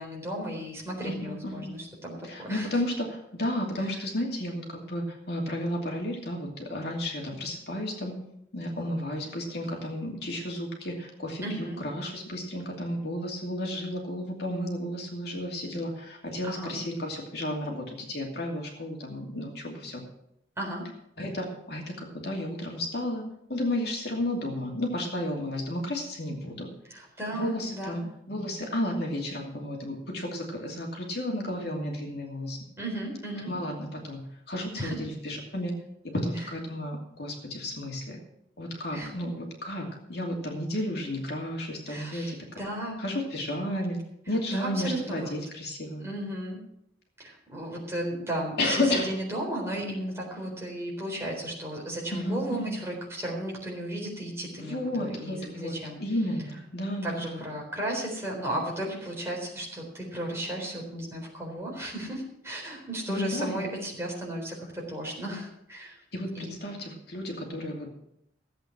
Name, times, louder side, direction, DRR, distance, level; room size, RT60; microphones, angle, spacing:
voice 1, 0.0-2.7 3.8-4.0 11.4-11.8 16.4-16.8 20.6-20.8 26.9-28.0 32.8-33.5 34.7-35.0 36.4-36.5 38.9-39.1 41.9-43.0 44.5-45.4 46.0-46.6 47.2-56.0 57.0-66.0 66.3-66.6, right 1 dB, 15° right, -2 dB, 3.9 m, -35 dB
voice 2, 1.0-1.7 2.2-8.1 8.5-20.0 21.2-23.2 23.5-26.7 27.3-28.0 28.3-32.6 33.5-35.7 36.0-38.2 38.6-42.4 43.0-44.0 44.3-46.0 48.6-49.1 52.1-52.4 52.6-52.7 54.7-57.4 63.1-63.7 66.1-67.9, left 1 dB, 55° left, 0 dB, 2.6 m, -32 dB
15.0 x 8.3 x 6.0 m, 0.75 s
head